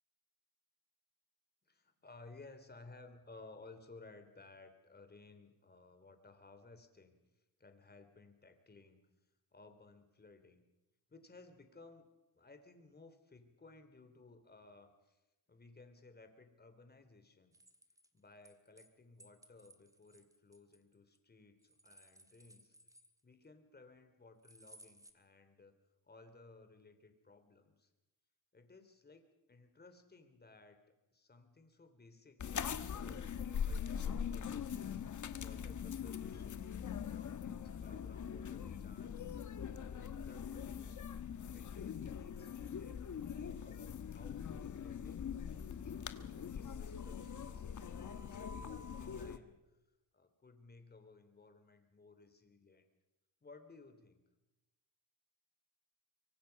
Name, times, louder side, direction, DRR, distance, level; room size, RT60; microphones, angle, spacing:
voice 1, 1.6-7.2 7.6-9.0 9.5-10.6 11.1-12.0 12.3-15.2 15.5-17.5 18.1-22.8 23.2-25.8 26.1-27.9 28.5-30.8 31.1-33.3 33.6-35.0 35.4-36.7 37.0-39.2 39.6-41.0 41.5-45.3 45.8-49.8 50.1-52.8 53.4-54.2, left 3 dB, 25° left, 8 dB, 3.1 m, -59 dB
sound 1, 17.5-18.9 19.2-21.2 21.6-23.5 24.4-25.1, right 1 dB, 10° right, 1.8 m, -62 dB
sound 2, 32.4-49.4, left 7 dB, 45° left, 1.4 m, -42 dB
25.0 x 24.0 x 5.8 m, 1.0 s
cardioid pair, 125°, 40 cm